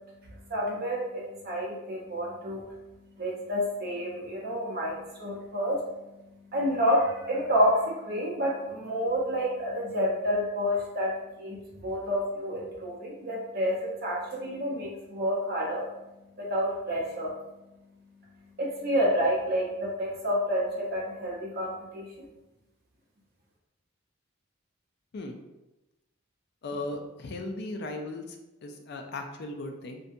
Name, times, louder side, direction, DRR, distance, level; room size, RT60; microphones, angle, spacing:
voice 1, 0.3-2.8 3.2-15.9 16.4-17.3 18.6-22.1, equal, 50° right, -4 dB, 0.7 m, -29 dB
voice 2, 26.6-28.4 28.6-30.0, left 2 dB, 50° left, 4 dB, 0.3 m, -37 dB
2.6 x 2.2 x 2.5 m, 0.99 s
head